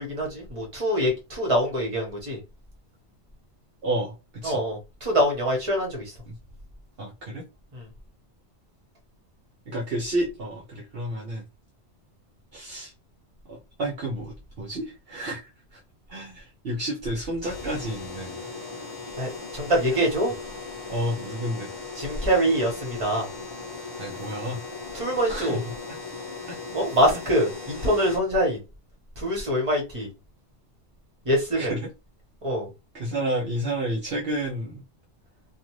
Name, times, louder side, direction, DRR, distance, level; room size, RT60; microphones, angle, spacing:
voice 1, 0.0-2.4 4.4-6.1 7.7-7.9 19.2-20.3 22.0-23.3 24.9-25.6 26.7-28.6 29.2-30.1 31.2-31.7 32.4-32.7, equal, 30° right, 1.1 m, -24 dB
voice 2, 3.8-4.1 4.4-4.6 6.3-6.4 7.0-7.4 9.7-11.4 12.5-12.9 13.5-15.8 16.1-18.4 20.9-21.7 24.0-24.6 25.3-25.6 31.5-31.9 32.9-34.8, right 1 dB, 60° right, 0.9 m, -30 dB
sound 1, 17.4-28.2, left 4 dB, 20° left, 1.0 m, -38 dB
2.5 x 2.4 x 3.0 m
omnidirectional pair, 1.2 m